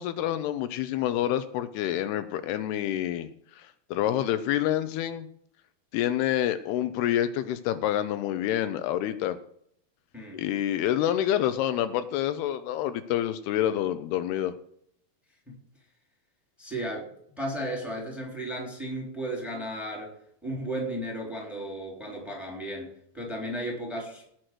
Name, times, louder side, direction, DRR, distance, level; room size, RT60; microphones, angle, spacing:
voice 1, 0.0-3.3 3.6-5.3 5.9-9.4 10.3-14.5, left 11 dB, 80° left, 11 dB, 2.6 m, -27 dB
voice 2, 16.6-17.1 17.4-20.1 20.4-22.9 23.1-24.2, right 1 dB, ahead, 0 dB, 3.1 m, -34 dB
17.5 x 6.4 x 6.2 m, 0.68 s
omnidirectional pair, 4.7 m